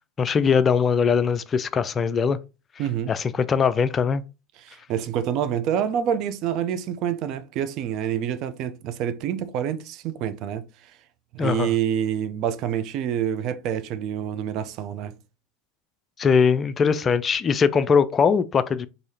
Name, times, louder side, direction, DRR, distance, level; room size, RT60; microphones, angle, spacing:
voice 1, 0.2-2.4 3.1-4.2 11.4-11.7 16.2-18.9, left 6 dB, 30° left, 0.3 m, -21 dB
voice 2, 2.8-3.1 4.6-10.6 11.3-15.1, right 9 dB, 50° right, 0.5 m, -27 dB
4.7 x 2.7 x 2.7 m
hypercardioid pair, 85°, 0 cm